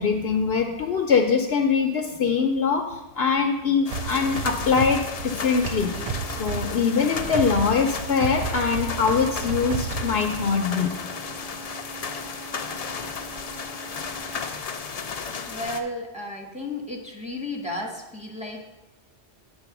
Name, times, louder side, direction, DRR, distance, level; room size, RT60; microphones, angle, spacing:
voice 1, 0.0-5.9 6.4-11.0, left 5 dB, 65° left, 5 dB, 0.8 m, -23 dB
sound 1, 3.9-15.8, left 5 dB, 45° left, 0.5 m, -34 dB
sound 2, 3.9-10.7, right 6 dB, 65° right, 0.3 m, -32 dB
sound 3, 5.4-14.4, right 3 dB, 30° right, 2.3 m, -44 dB
voice 2, 15.5-18.6, left 1 dB, 5° right, -1 dB, 1.1 m, -33 dB
8.8 x 4.2 x 5.9 m, 0.98 s
omnidirectional pair, 1.1 m